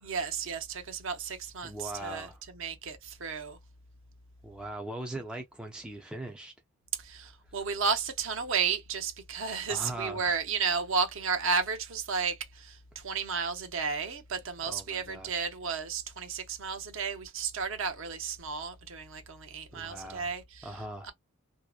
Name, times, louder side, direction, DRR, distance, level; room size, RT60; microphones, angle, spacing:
voice 1, 0.0-2.3 2.5-3.6 7.0-20.7 21.0-21.1, right 5 dB, 55° right, 0.6 m, -33 dB
voice 2, 1.6-2.4 4.4-6.5 9.7-10.4 14.7-15.4 19.7-20.4 20.6-21.1, right 1 dB, 5° right, 0.3 m, -40 dB
2.7 x 2.0 x 2.2 m
head